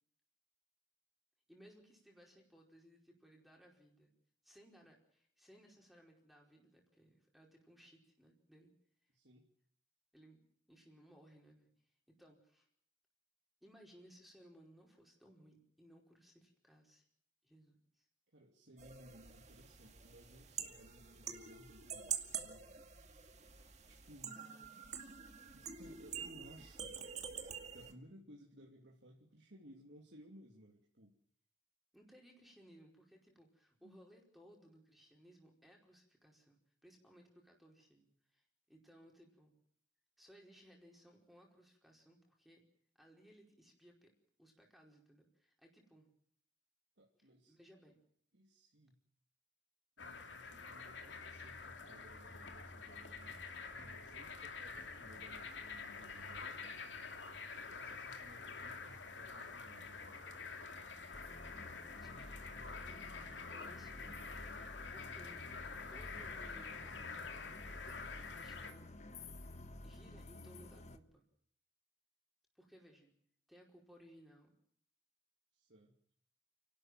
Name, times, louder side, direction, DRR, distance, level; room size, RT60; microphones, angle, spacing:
voice 1, 1.5-4.1 4.4-8.7 10.1-10.4 10.7-11.7 12.1-12.7 13.6-17.0 17.4-18.1 24.3-24.8 31.9-39.5 40.2-42.6 43.0-44.1 44.4-46.1 47.2-48.0 62.0-62.4 62.7-65.4 65.9-67.6 68.3-68.9 69.8-71.2 72.5-73.1 73.5-74.5, equal, ahead, 0 dB, 4.9 m, -62 dB
voice 2, 9.1-9.5 18.3-22.7 23.9-24.4 25.5-27.0 27.7-31.2 33.8-34.0 47.0-47.6 48.3-49.0 50.0-56.9 57.6-60.3 75.5-76.0, equal, 70° right, -1 dB, 3.0 m, -60 dB
sound 1, 18.8-27.9, right 7 dB, 40° right, 2.2 m, -47 dB
sound 2, 50.0-68.7, left 4 dB, 80° left, 2.6 m, -48 dB
sound 3, 61.1-71.0, left 1 dB, 40° left, 1.4 m, -52 dB
30.0 x 12.5 x 9.2 m, 0.64 s
head